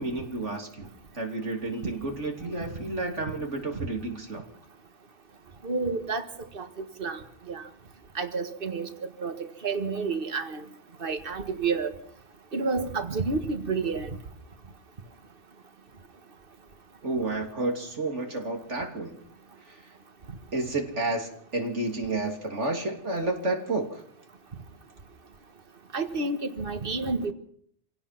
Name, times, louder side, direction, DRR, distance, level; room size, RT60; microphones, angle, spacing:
voice 1, 0.0-4.5 17.0-19.2 19.7-19.8 20.5-24.0, right 2 dB, 90° right, 2 dB, 3.4 m, -31 dB
voice 2, 5.6-6.3 6.5-7.2 7.5-7.6 8.2-8.9 9.2-9.4 9.6-10.6 11.0-11.9 12.5-14.1 25.9-27.3, right 4 dB, 50° right, 7 dB, 1.8 m, -29 dB
26.5 x 17.5 x 5.9 m, 0.63 s
omnidirectional pair, 1.2 m